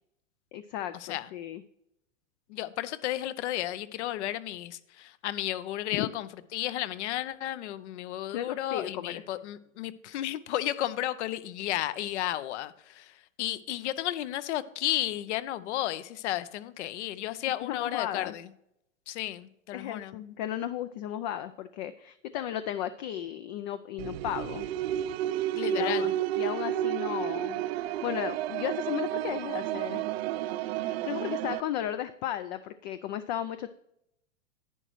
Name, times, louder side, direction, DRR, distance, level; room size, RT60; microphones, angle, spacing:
voice 1, 0.5-1.6 5.9-6.1 8.3-9.2 17.6-18.3 19.7-24.7 25.7-30.1 30.8-33.7, left 11 dB, 35° left, 0.4 m, -35 dB
voice 2, 2.5-13.1 13.4-18.5 19.1-20.2 25.5-26.1, left 13 dB, 60° left, 0.8 m, -33 dB
sound 1, 24.0-31.6, right 13 dB, 55° right, 0.5 m, -31 dB
11.0 x 9.0 x 3.1 m
hypercardioid pair, 125°, 38 cm